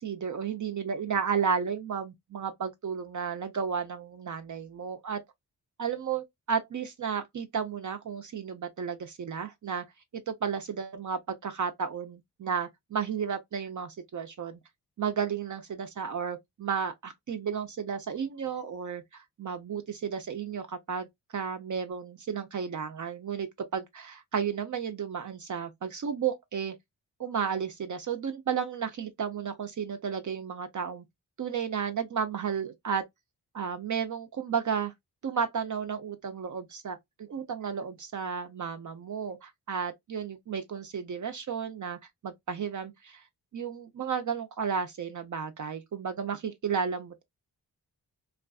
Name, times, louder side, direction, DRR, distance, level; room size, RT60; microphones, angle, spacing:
voice 1, 0.0-5.2 5.8-9.8 10.1-14.6 15.0-21.1 21.3-26.8 27.2-31.0 31.4-33.0 33.5-34.9 35.2-43.2 43.5-47.2, right 7 dB, 45° right, 0.6 m, -33 dB
2.4 x 2.3 x 2.3 m
supercardioid pair, 45°, 42 cm